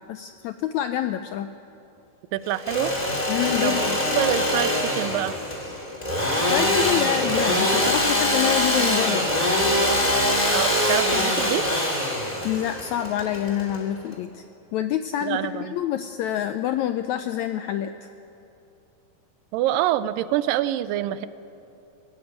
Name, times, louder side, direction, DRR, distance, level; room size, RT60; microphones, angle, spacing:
voice 1, 0.1-1.5 3.3-4.0 6.4-9.5 12.4-14.4 14.7-17.9, left 11 dB, 85° left, 10 dB, 1.6 m, -27 dB
voice 2, 2.3-2.9 3.6-5.4 10.5-11.7 15.2-15.8 19.5-21.3, right 13 dB, 85° right, 15 dB, 2.4 m, -26 dB
Engine / Sawing, 2.5-14.1, left 1 dB, 15° left, 2.1 m, -23 dB
21.0 x 16.0 x 9.4 m, 2.9 s
omnidirectional pair, 3.9 m